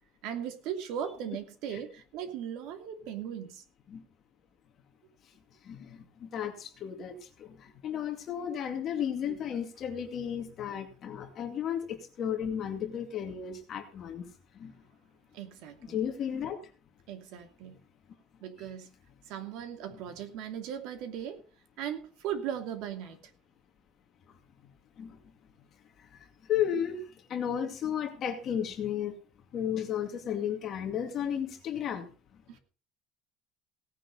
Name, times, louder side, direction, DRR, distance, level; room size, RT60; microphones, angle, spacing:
voice 1, 0.2-3.6 9.3-9.4 15.3-16.0 17.1-17.8 18.4-18.9 19.3-21.4 21.8-23.2 32.5-32.6, right 9 dB, 70° right, 2.7 m, -38 dB
voice 2, 5.7-14.2 14.6-14.7 15.9-16.6 19.9-20.0 25.0-25.2 26.5-27.0 27.3-29.1 29.5-32.1, left 9 dB, 40° left, 2.3 m, -33 dB
17.5 x 9.8 x 4.1 m
cardioid pair, 160°, 0 cm